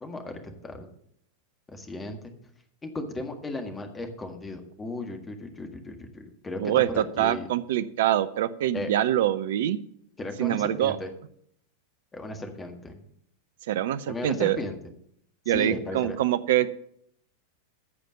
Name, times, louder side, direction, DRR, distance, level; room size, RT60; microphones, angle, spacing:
voice 1, 0.0-0.9 1.7-2.3 2.8-6.6 6.9-7.5 8.7-8.9 10.2-11.1 12.1-13.0 14.1-14.8 15.5-16.2, left 2 dB, 15° left, 5 dB, 1.7 m, -36 dB
voice 2, 6.6-9.8 10.4-11.0 13.7-14.6 15.5-16.7, right 12 dB, 55° right, 14 dB, 0.5 m, -25 dB
14.5 x 5.0 x 7.2 m, 0.70 s
figure-of-eight pair, 90°, 0 cm